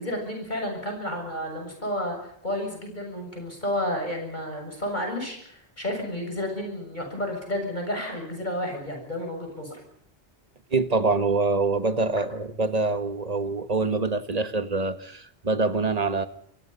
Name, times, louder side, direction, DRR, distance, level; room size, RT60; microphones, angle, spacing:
voice 1, 0.0-9.8, left 1 dB, 45° left, 3 dB, 7.2 m, -31 dB
voice 2, 10.7-16.3, right 3 dB, 35° right, 10 dB, 1.6 m, -25 dB
26.5 x 23.5 x 5.7 m, 0.68 s
omnidirectional pair, 1.1 m